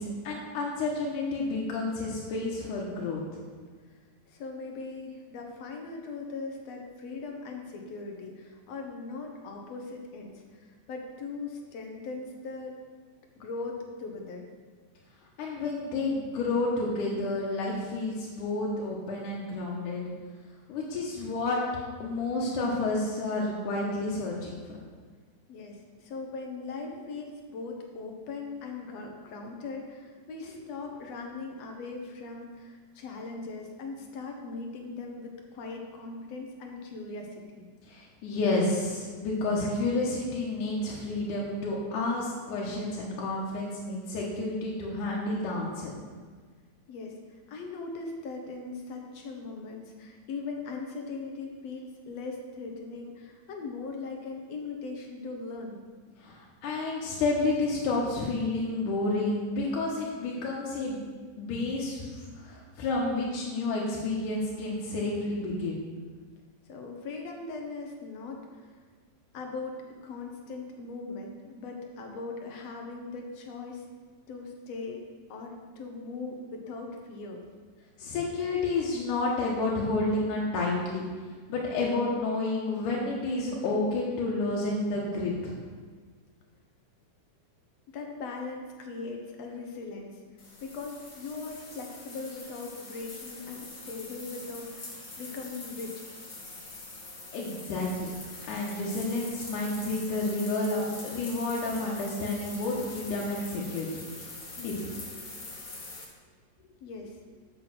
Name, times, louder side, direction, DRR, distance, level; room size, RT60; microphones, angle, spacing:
voice 1, 0.0-3.2 15.4-20.1 20.7-21.6 22.0-24.8 37.9-45.9 56.2-61.0 61.4-65.8 78.0-85.6 97.3-98.1 98.5-103.9 104.6-104.7, left 2 dB, 85° left, -4 dB, 2.7 m, -30 dB
voice 2, 4.3-12.8 13.4-14.5 25.5-37.7 46.9-47.2 47.5-55.8 66.7-68.8 69.3-73.8 74.3-75.0 75.3-77.4 87.9-90.2 90.6-96.0 106.8-107.2, left 3 dB, 65° left, 2 dB, 1.9 m, -39 dB
sound 1, 90.4-106.1, left 2 dB, 40° left, 1.4 m, -44 dB
7.5 x 7.0 x 6.0 m, 1.5 s
omnidirectional pair, 3.5 m